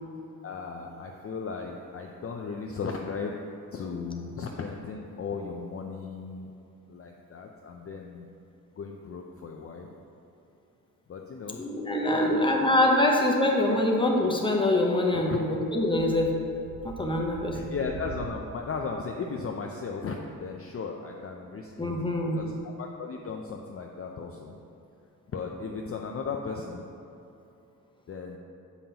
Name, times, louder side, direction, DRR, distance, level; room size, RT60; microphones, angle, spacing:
voice 1, 0.4-3.3 3.7-6.5 6.9-8.3 8.8-9.9 11.1-11.6 12.1-12.6 15.1-15.4 17.5-21.9 22.3-24.6 25.3-26.9 28.1-28.4, left 5 dB, 40° left, 1 dB, 0.5 m, -36 dB
voice 2, 11.6-16.3 16.8-17.6 21.8-22.5, left 1 dB, 15° left, 0 dB, 0.8 m, -24 dB
sound 1, 15.5-18.4, right 5 dB, 80° right, 0.6 m, -43 dB
7.0 x 5.4 x 2.9 m, 2.8 s
cardioid pair, 80°, 36 cm